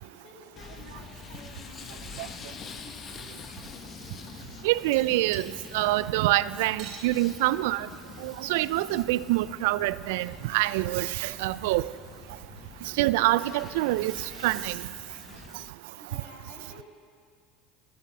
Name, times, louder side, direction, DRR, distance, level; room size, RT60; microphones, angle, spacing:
voice 1, 0.0-3.7 16.0-16.8, left 3 dB, 65° left, 1 dB, 4.1 m, -52 dB
sound 1, 0.6-15.7, left 6 dB, 40° left, 1.2 m, -46 dB
voice 2, 4.6-5.4 5.7-7.9 8.2-11.8 13.0-14.1 14.4-14.7, right 17 dB, 70° right, 18 dB, 0.4 m, -25 dB
sound 2, 4.9-5.5 6.6-7.1 8.0-8.1 8.3-8.4 9.3-9.4, right 6 dB, 55° right, 3.8 m, -43 dB
14.5 x 8.9 x 9.4 m, 2.2 s
hypercardioid pair, 80°, 0 cm